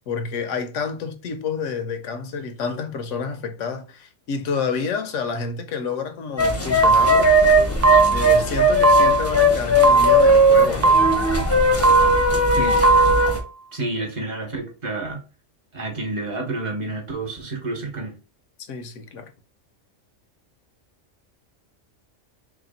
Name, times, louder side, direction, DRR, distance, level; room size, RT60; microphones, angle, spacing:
voice 1, 0.1-7.3 8.1-11.0 18.6-19.3, left 5 dB, 80° left, 1.0 m, -29 dB
sound 1, 6.4-13.4, equal, 15° left, 0.6 m, -18 dB
sound 2, 6.8-7.4 7.8-8.4 8.8-9.4 9.8-10.4 10.8-11.4 11.8-12.4 12.8-13.4, right 4 dB, 80° right, 0.3 m, -18 dB
voice 2, 13.7-15.2 15.7-18.1, right 2 dB, 40° right, 1.1 m, -29 dB
3.2 x 2.9 x 4.0 m
omnidirectional pair, 1.3 m